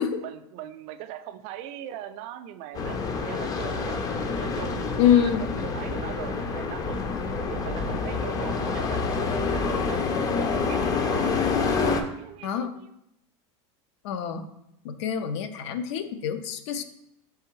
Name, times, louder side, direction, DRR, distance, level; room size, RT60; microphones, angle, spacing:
voice 1, 0.2-3.0 3.2-4.0 4.4-7.1 7.5-11.3 11.6-12.9, right 11 dB, 50° right, 10 dB, 0.4 m, -40 dB
sound 1, 2.7-12.0, left 4 dB, 25° left, 0.4 m, -27 dB
voice 2, 5.0-5.5 12.4-12.8 14.0-14.5 14.8-16.8, left 9 dB, 75° left, 10 dB, 0.5 m, -25 dB
3.4 x 3.3 x 4.6 m, 0.80 s
supercardioid pair, 140°, 15 cm